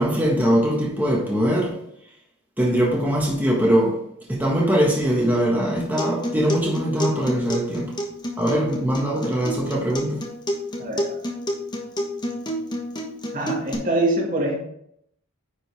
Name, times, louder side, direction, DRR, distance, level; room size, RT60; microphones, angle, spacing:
voice 1, 0.0-1.8 2.6-4.0 4.3-7.9 8.4-10.2, equal, 10° right, 1.5 m, -21 dB
Acoustic guitar, 5.8-13.7, equal, 20° left, 1.2 m, -30 dB
voice 2, 10.8-11.2 13.3-14.6, right 1 dB, 40° right, 2.0 m, -24 dB
9.7 x 5.2 x 3.5 m
head